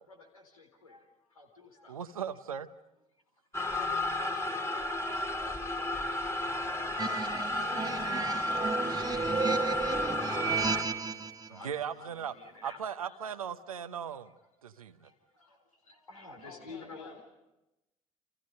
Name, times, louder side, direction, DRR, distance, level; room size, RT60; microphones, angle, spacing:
voice 1, 0.0-2.0 3.3-3.4 3.7-7.2 7.7-13.3 14.8-17.1, left 3 dB, 85° left, 3 dB, 4.0 m, -52 dB
voice 2, 1.9-2.7 11.5-12.3 12.6-14.3 14.6-15.1, right 8 dB, 80° right, 8 dB, 0.9 m, -38 dB
sound 1, 3.5-10.8, left 1 dB, 15° left, 2.7 m, -33 dB
sound 2, 7.0-11.5, right 4 dB, 20° right, 1.3 m, -33 dB
voice 3, 16.4-17.2, left 5 dB, 70° left, 1 dB, 7.3 m, -51 dB
30.0 x 29.0 x 5.4 m, 0.96 s
figure-of-eight pair, 55°, 18 cm